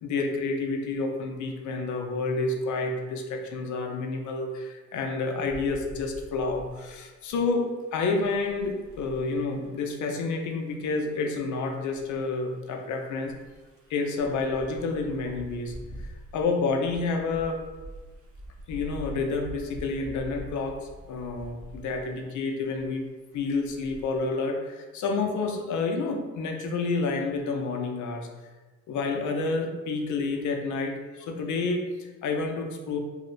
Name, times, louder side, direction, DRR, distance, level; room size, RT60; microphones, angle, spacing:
voice 1, 0.0-7.7 7.9-13.3 13.9-15.7 16.3-17.6 18.7-20.8 21.1-28.3 28.9-33.0, left 3 dB, 75° left, 3 dB, 0.6 m, -29 dB
sound 1, 5.5-7.3 7.6-9.9 10.4-10.5 10.8-11.0 11.2-11.4 11.9-22.3 22.7-23.0 23.3-24.2, equal, 50° right, 0.7 m, -45 dB
2.7 x 2.0 x 3.9 m, 1.2 s
cardioid pair, 90°, 30 cm